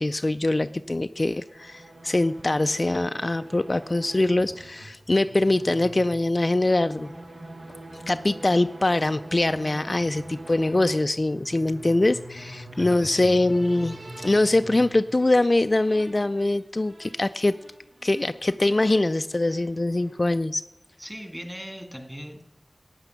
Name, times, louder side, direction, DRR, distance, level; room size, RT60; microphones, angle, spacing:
voice 1, 0.0-7.1 7.9-17.5 18.0-20.6, left 2 dB, 45° left, 11 dB, 0.3 m, -23 dB
sound 1, 1.3-20.4, right 1 dB, 70° right, 1.6 m, -44 dB
voice 2, 12.7-13.4 21.0-22.4, equal, 10° right, 5 dB, 2.0 m, -38 dB
13.0 x 8.8 x 5.7 m, 0.94 s
wide cardioid pair, 55°, 0 cm